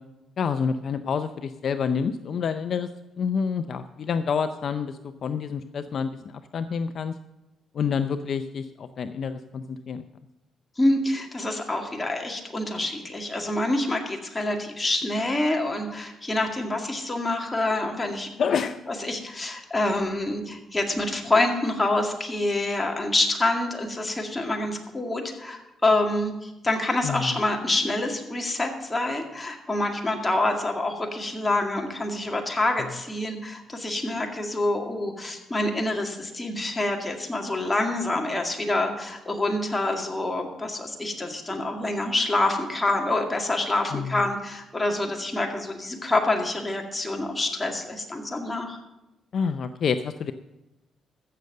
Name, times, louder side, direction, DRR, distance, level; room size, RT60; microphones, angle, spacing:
voice 1, 0.4-2.9 3.2-7.1 7.7-10.0 18.4-18.8 27.0-27.3 43.9-44.2 49.3-50.3, left 6 dB, 55° left, 10 dB, 0.5 m, -28 dB
voice 2, 10.8-18.3 18.9-48.8, left 2 dB, 15° left, 2 dB, 2.1 m, -26 dB
15.0 x 6.7 x 6.5 m, 0.99 s
cardioid pair, 90°, 0 cm